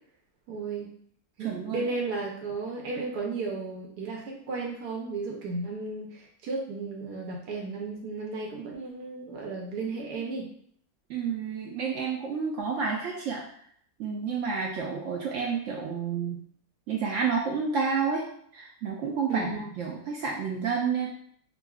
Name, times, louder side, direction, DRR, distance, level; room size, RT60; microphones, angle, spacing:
voice 1, 0.5-0.9 1.4-10.5 19.3-19.6, right 3 dB, 85° right, -1 dB, 1.2 m, -34 dB
voice 2, 1.4-1.9 11.1-13.5 14.0-16.4 16.9-18.2 18.5-19.5 19.8-21.1, right 5 dB, 70° right, -1 dB, 0.7 m, -30 dB
5.3 x 2.3 x 2.3 m, 0.64 s
omnidirectional pair, 1.7 m